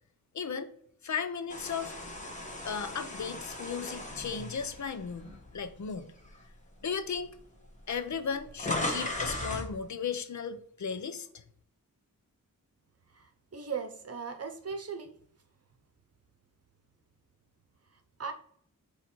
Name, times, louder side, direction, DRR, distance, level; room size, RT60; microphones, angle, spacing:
voice 1, 0.3-0.7 1.0-2.0 2.6-6.1 6.8-7.3 7.9-11.4, left 6 dB, 55° left, 10 dB, 0.6 m, -36 dB
sound 1, 1.5-5.7 6.3-6.5 7.4-7.5 7.7-9.7, left 2 dB, 20° left, 1.3 m, -37 dB
voice 2, 13.1-15.1 18.2-18.3, right 5 dB, 45° right, 8 dB, 0.8 m, -38 dB
8.1 x 3.2 x 4.3 m, 0.65 s
wide cardioid pair, 140°, 34 cm